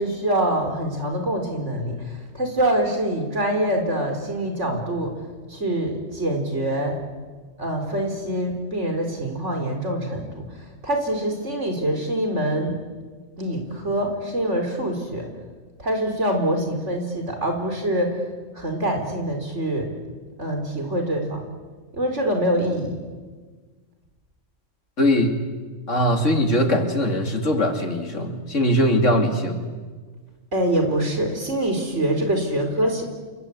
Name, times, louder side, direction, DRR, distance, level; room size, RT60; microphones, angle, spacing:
voice 1, 0.0-5.1 5.5-7.0 7.6-10.4 10.8-12.8 13.4-15.3 15.8-18.2 18.5-19.9 20.4-21.4 21.9-23.0 30.5-33.0, right 1 dB, 70° right, 4 dB, 5.0 m, -25 dB
voice 2, 25.0-25.4 25.9-29.6, left 1 dB, 75° left, 4 dB, 3.2 m, -21 dB
28.5 x 24.0 x 8.7 m, 1.4 s
omnidirectional pair, 1.3 m